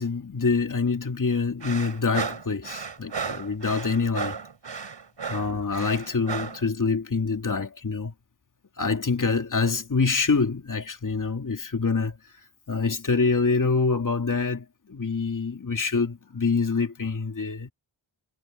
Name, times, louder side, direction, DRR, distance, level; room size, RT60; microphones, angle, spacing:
voice 1, 0.0-4.4 5.3-8.1 8.8-12.2 12.7-17.7, left 4 dB, 40° left, 2.6 m, -26 dB
sound 1, 1.6-6.6, right 5 dB, 60° right, 4.6 m, -34 dB
wide cardioid pair, 85°, 48 cm